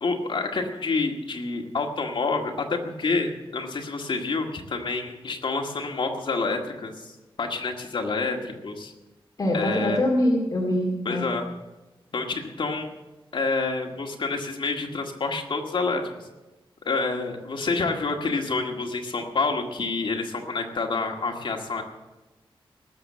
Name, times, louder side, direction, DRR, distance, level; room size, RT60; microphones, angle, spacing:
voice 1, 0.0-7.1 7.4-8.9 9.5-10.0 11.1-11.4 12.1-12.9 13.3-16.1 16.9-21.8, left 3 dB, 60° left, 2 dB, 1.8 m, -28 dB
voice 2, 9.4-11.3, left 1 dB, 40° left, -2 dB, 2.3 m, -24 dB
18.5 x 7.0 x 7.6 m, 1.1 s
wide cardioid pair, 150°, 9 cm